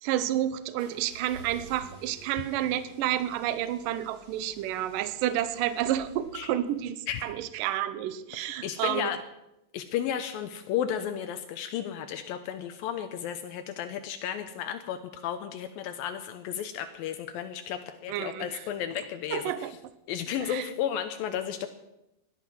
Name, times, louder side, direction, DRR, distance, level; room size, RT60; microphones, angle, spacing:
voice 1, 0.0-9.1 18.1-18.6 19.3-19.8 20.4-20.7, right 12 dB, 80° right, 13 dB, 2.3 m, -30 dB
sound 1, 0.8-6.8, right 3 dB, 40° right, 5.2 m, -51 dB
voice 2, 8.6-9.2 9.7-19.4 20.1-21.7, left 9 dB, 80° left, 8 dB, 2.5 m, -33 dB
17.5 x 11.5 x 6.1 m, 0.89 s
omnidirectional pair, 4.1 m